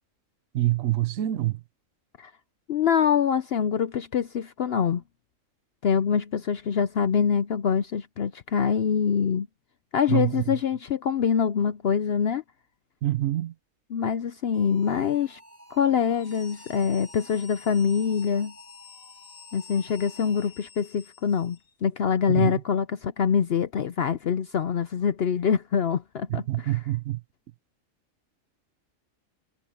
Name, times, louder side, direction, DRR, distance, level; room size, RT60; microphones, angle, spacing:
voice 1, 0.5-1.6 10.1-10.6 13.0-13.5 22.3-22.6 26.3-27.2, right 15 dB, 80° right, 1.1 m, -26 dB
voice 2, 2.7-5.0 5.8-9.5 9.9-12.4 13.9-15.4 15.7-18.5 19.5-26.7, left 7 dB, 60° left, 0.8 m, -25 dB
sound 1, 14.5-20.8, right 1 dB, 30° right, 6.0 m, -53 dB
sound 2, 16.1-21.8, left 6 dB, 85° left, 2.0 m, -49 dB
omnidirectional pair, 1.3 m